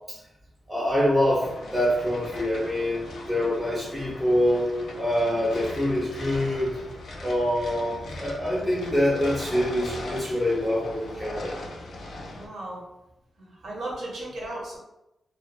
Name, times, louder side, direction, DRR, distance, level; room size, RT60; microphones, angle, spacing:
voice 1, 0.7-6.8 7.2-11.5, left 1 dB, 5° right, -7 dB, 0.5 m, -25 dB
sound 1, 1.4-12.5, left 1 dB, 60° left, 0.3 m, -39 dB
voice 2, 12.3-12.8 13.4-14.8, right 1 dB, 60° right, -3 dB, 0.7 m, -36 dB
2.3 x 2.3 x 2.3 m, 0.90 s
wide cardioid pair, 175°, 0 cm